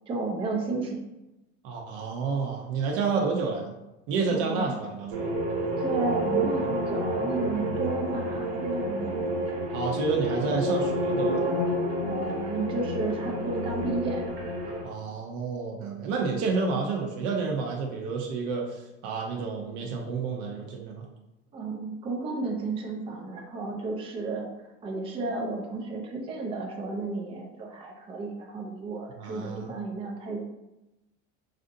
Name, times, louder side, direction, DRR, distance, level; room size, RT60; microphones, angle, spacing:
voice 1, 0.1-1.0 4.3-4.7 5.8-9.2 12.0-14.3 21.5-24.5 24.8-30.4, right 3 dB, 20° right, 0 dB, 0.4 m, -32 dB
voice 2, 1.6-3.7 4.1-5.3 9.7-11.4 14.8-21.0 29.2-29.7, right 4 dB, 60° right, 0 dB, 0.7 m, -30 dB
sound 1, 5.1-14.8, right 1 dB, 80° right, 1.2 m, -29 dB
4.1 x 2.6 x 2.6 m, 0.97 s
cardioid pair, 150°, 29 cm